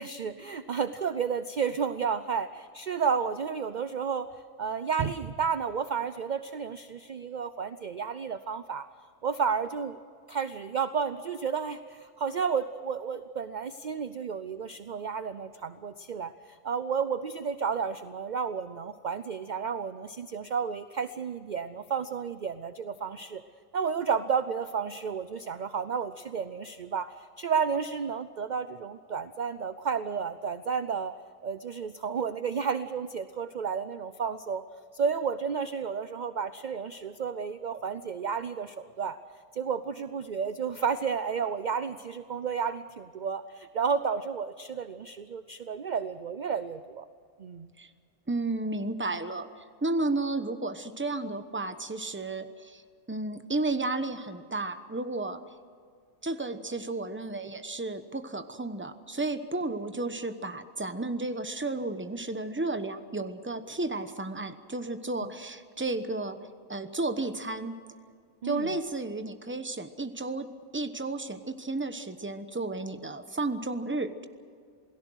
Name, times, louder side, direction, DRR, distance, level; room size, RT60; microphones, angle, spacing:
voice 1, 0.0-4.3 4.6-8.9 9.2-10.0 10.3-23.4 23.7-31.1 31.4-34.6 34.9-39.2 39.5-47.0 47.4-47.7 68.4-68.7, right 6 dB, 45° right, 12 dB, 0.6 m, -32 dB
voice 2, 48.3-49.5 49.8-52.8 53.1-55.4 56.2-66.4 66.7-67.7 68.4-70.5 70.7-74.2, right 2 dB, 10° right, 9 dB, 0.9 m, -32 dB
28.0 x 18.0 x 6.4 m, 2.2 s
omnidirectional pair, 1.3 m